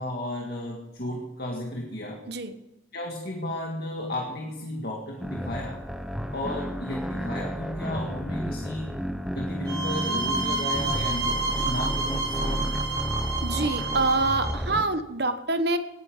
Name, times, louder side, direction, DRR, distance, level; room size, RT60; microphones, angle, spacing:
voice 1, 0.0-2.2 2.9-5.8 6.3-8.9 9.3-12.7, left 1 dB, 55° left, 0 dB, 1.9 m, -33 dB
sound 1, 5.2-14.8, equal, 5° right, 1.1 m, -32 dB
sound 2, 9.7-14.6, right 3 dB, 20° right, 2.5 m, -30 dB
voice 2, 13.4-15.8, right 2 dB, 60° right, 9 dB, 1.1 m, -26 dB
18.5 x 9.8 x 5.1 m, 0.99 s
head